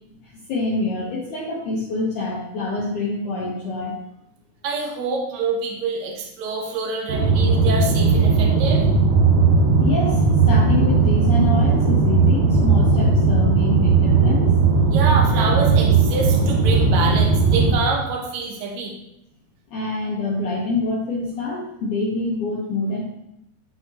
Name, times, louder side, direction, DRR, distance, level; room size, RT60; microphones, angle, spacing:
voice 1, 0.2-4.0 9.8-14.5 19.7-23.0, left 2 dB, 65° left, -6 dB, 2.1 m, -26 dB
voice 2, 4.6-8.8 14.9-18.9, right 3 dB, 65° right, -1 dB, 1.8 m, -26 dB
sound 1, 7.1-17.8, right 4 dB, 85° right, 3.5 m, -17 dB
12.5 x 4.3 x 2.9 m, 0.81 s
omnidirectional pair, 5.0 m